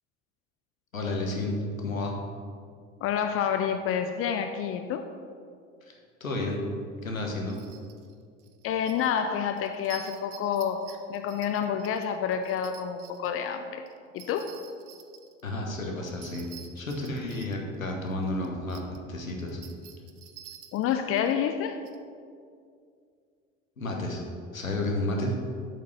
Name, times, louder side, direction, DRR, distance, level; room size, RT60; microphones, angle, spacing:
voice 1, 0.9-2.2 5.9-6.6 7.0-7.6 15.4-16.5 16.7-18.8 19.1-19.6 23.8-24.2 24.5-25.4, left 2 dB, 85° left, 1 dB, 1.1 m, -31 dB
voice 2, 3.0-5.1 8.6-13.9 14.1-14.5 20.7-21.8, left 8 dB, 35° left, 7 dB, 0.4 m, -28 dB
sound 1, 7.0-7.1 7.5-8.1 8.4-9.1 9.6-13.3 13.9-15.5 16.1-19.0 19.3-21.3 21.8-22.0, right 10 dB, 60° right, 0.8 m, -49 dB
7.7 x 5.2 x 5.8 m, 2.3 s
figure-of-eight pair, 65°, 39 cm